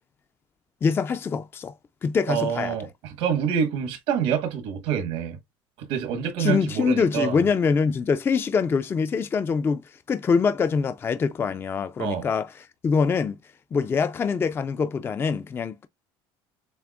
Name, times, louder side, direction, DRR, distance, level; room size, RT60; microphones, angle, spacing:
voice 1, 0.8-1.7 2.0-2.8 6.4-9.8 10.1-13.4 13.7-15.9, left 5 dB, 20° left, 0.4 m, -24 dB
voice 2, 2.3-5.4 5.8-7.4 12.0-12.3, right 8 dB, 80° right, 1.4 m, -27 dB
7.0 x 2.5 x 2.4 m
cardioid pair, 125°, 10 cm